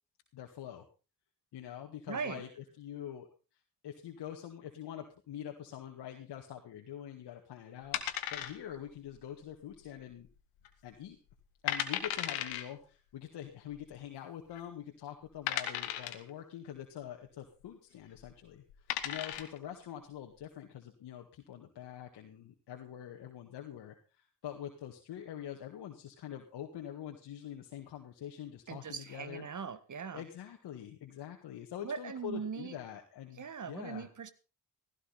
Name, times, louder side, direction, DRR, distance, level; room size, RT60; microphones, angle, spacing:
voice 1, 0.3-0.9 1.5-3.3 3.8-8.0 8.3-10.3 10.8-11.2 11.6-29.5 30.1-34.1, left 10 dB, 65° left, 2 dB, 1.9 m, -45 dB
voice 2, 2.1-2.4 28.7-30.2 31.8-32.8 33.4-34.3, right 6 dB, 40° right, 14 dB, 1.7 m, -40 dB
sound 1, 7.9-8.9 9.2-9.3 9.9-10.3 10.6-10.7 11.3-11.4 11.7-12.6 13.7-13.8 14.5-14.6 15.5-16.3 18.1-18.3 18.7-19.6, left 12 dB, 85° left, 1.5 m, -35 dB
16.0 x 15.0 x 4.2 m, 0.34 s
hypercardioid pair, 45°, 43 cm